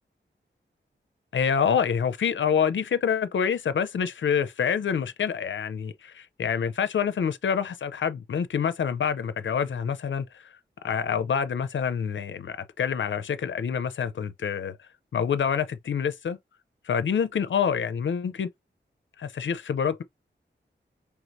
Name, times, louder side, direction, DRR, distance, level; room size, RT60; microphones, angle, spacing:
voice 1, 1.3-10.5 10.8-14.8 15.1-16.4 16.8-18.5 19.2-20.0, left 7 dB, 75° left, 0.5 m, -27 dB
4.5 x 3.4 x 2.6 m
wide cardioid pair, 80°, 19 cm